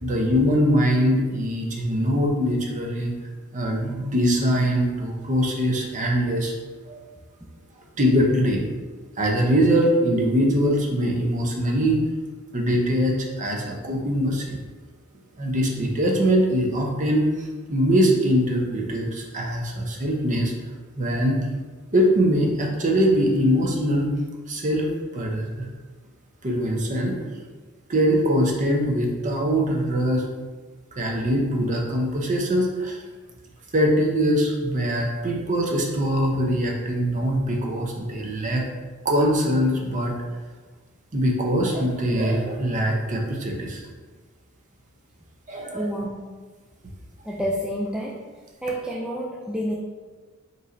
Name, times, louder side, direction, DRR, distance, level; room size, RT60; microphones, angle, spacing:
voice 1, 0.0-3.1 3.5-6.5 6.9-7.0 8.0-8.6 9.2-12.0 12.5-14.6 15.4-20.5 21.0-21.5 21.9-24.1 24.5-24.9 25.1-25.7 26.4-27.2 27.9-30.2 31.0-33.0 33.7-38.6 39.0-40.4 41.1-43.8 45.5-45.9, equal, 35° right, 0 dB, 0.7 m, -22 dB
voice 2, 45.7-46.3 47.2-48.3 48.6-49.7, equal, 5° right, -4 dB, 0.3 m, -29 dB
5.2 x 3.1 x 2.6 m, 1.3 s
head